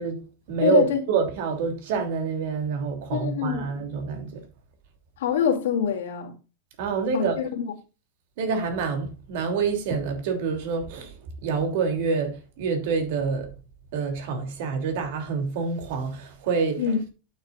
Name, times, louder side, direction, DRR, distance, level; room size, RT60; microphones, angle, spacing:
voice 1, 0.0-4.4 6.8-7.4 8.4-11.1 11.4-13.5 13.9-16.8, right 5 dB, 70° right, 2.9 m, -27 dB
voice 2, 0.6-1.0 3.1-3.7 5.2-6.3 7.1-7.6 16.8-17.0, left 8 dB, 85° left, 2.6 m, -25 dB
11.5 x 6.4 x 2.5 m
supercardioid pair, 125°, 0 cm